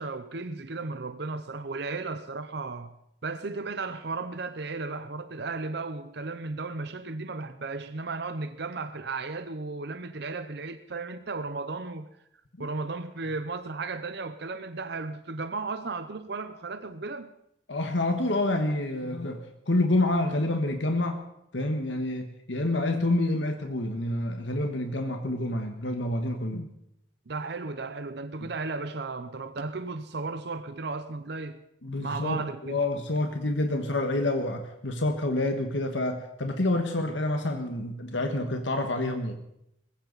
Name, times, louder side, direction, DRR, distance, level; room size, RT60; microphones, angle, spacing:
voice 1, 0.0-2.9 3.2-12.1 12.6-17.3 27.3-31.6 32.0-32.8, right 3 dB, 65° right, 0.8 m, -35 dB
voice 2, 17.7-21.2 21.5-26.7 28.4-28.5 31.8-39.4, left 2 dB, 90° left, 1.5 m, -28 dB
20.5 x 16.0 x 4.1 m
head